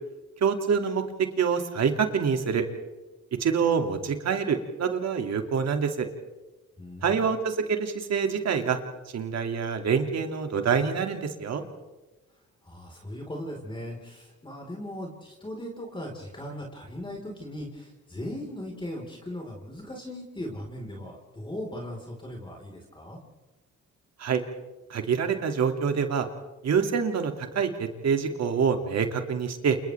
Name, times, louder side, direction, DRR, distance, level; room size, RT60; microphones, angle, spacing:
voice 1, 0.4-1.0 1.4-2.6 3.4-6.1 7.0-8.8 9.1-11.6 24.2-24.4 24.9-26.3 26.6-29.8, right 6 dB, 60° right, 5 dB, 2.6 m, -26 dB
voice 2, 6.8-7.1 12.6-23.2, left 1 dB, 15° left, -1 dB, 4.5 m, -38 dB
30.0 x 28.5 x 3.5 m, 1.1 s
cardioid pair, 90°, 30 cm